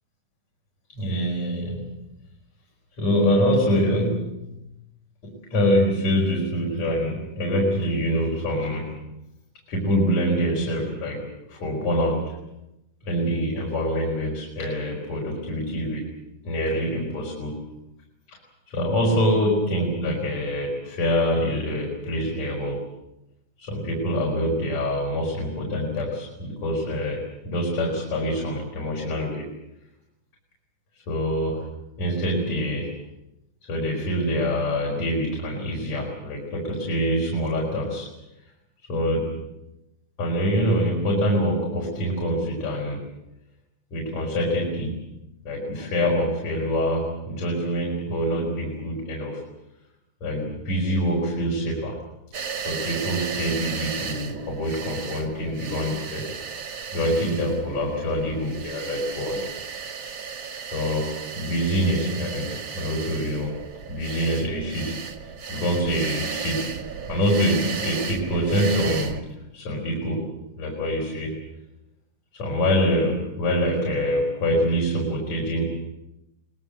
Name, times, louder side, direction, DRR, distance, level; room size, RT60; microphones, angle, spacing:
voice 1, 0.9-2.0 3.0-4.5 5.2-9.0 9.7-12.2 13.1-16.0 16.4-17.6 18.3-18.4 18.7-22.9 23.6-29.5 31.1-31.7 32.0-33.0 33.7-38.1 38.9-39.4 40.2-43.1 43.9-45.0 45.4-49.4 50.2-52.0 52.7-56.3 56.9-59.5 60.7-63.6 63.9-65.0 65.5-66.7 67.1-69.2 69.5-71.3 72.3-75.7, equal, 60° left, -3 dB, 5.7 m, -25 dB
sound 1, 52.3-69.2, right 6 dB, 45° right, 2.3 m, -34 dB
24.0 x 20.5 x 7.8 m, 0.91 s
omnidirectional pair, 3.6 m